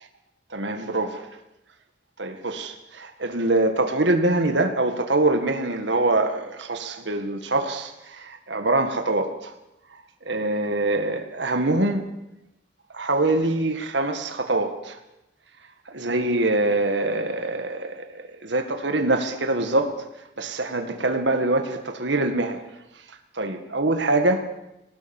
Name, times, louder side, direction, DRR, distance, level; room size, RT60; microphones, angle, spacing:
voice 1, 0.5-1.3 2.2-9.5 10.3-12.1 12.9-15.0 15.9-20.0 20.4-22.6 23.4-24.5, right 2 dB, 75° right, 6 dB, 1.9 m, -24 dB
21.0 x 18.5 x 7.2 m, 0.91 s
head